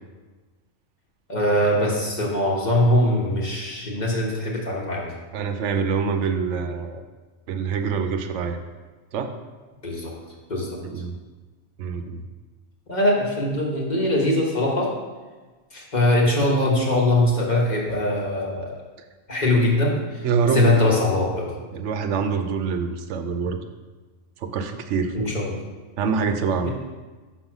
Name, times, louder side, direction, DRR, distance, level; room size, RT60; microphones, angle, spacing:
voice 1, 1.3-5.1 9.8-10.1 10.5-10.8 12.9-14.9 15.7-18.7 19.3-20.2 20.5-21.5 25.1-25.6 26.6-26.7, left 1 dB, 40° left, -3 dB, 1.2 m, -22 dB
voice 2, 5.3-7.0 7.5-8.6 9.1-9.3 10.8-11.2 11.8-12.2 20.2-20.7 21.7-23.7 24.4-25.3 26.0-26.7, right 5 dB, 80° right, 7 dB, 0.9 m, -25 dB
5.5 x 4.4 x 6.0 m, 1.3 s
omnidirectional pair, 1.2 m